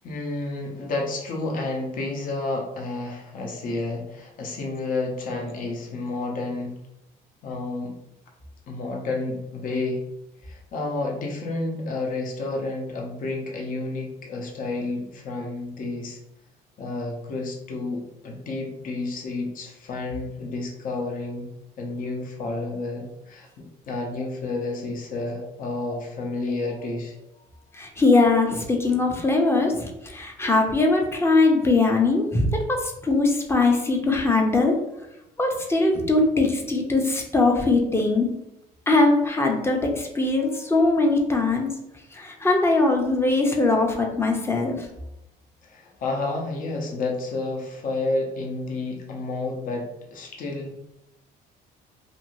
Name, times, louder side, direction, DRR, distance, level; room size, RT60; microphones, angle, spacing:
voice 1, 0.0-6.7 7.4-8.0 8.7-10.0 10.4-16.2 16.8-21.5 21.8-27.2 45.6-50.7, left 2 dB, 55° left, 1 dB, 0.7 m, -30 dB
voice 2, 27.7-34.8 35.4-38.3 38.9-41.7 42.1-44.9, left 3 dB, 15° left, 2 dB, 0.6 m, -21 dB
2.6 x 2.6 x 3.0 m, 0.83 s
cardioid pair, 110°, 17 cm